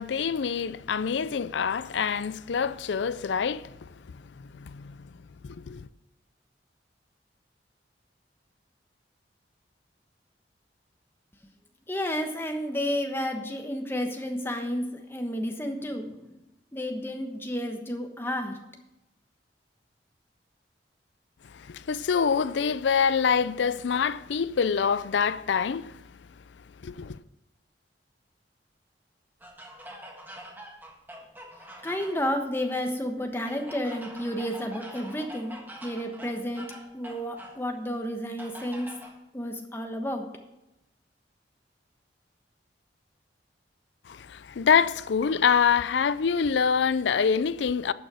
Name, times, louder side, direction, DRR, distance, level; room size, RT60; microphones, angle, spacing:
voice 1, 0.0-3.9 4.4-4.9 5.4-5.9 21.5-25.9 26.8-27.2 44.1-47.9, left 6 dB, 80° left, 0.4 m, -25 dB
voice 2, 11.9-16.4 16.7-18.6 31.8-38.9 39.3-40.3, equal, 15° left, 1.2 m, -31 dB
sound 1, 29.4-32.4 33.5-37.6 38.4-39.1, equal, 10° right, 1.5 m, -45 dB
11.5 x 6.2 x 6.2 m
head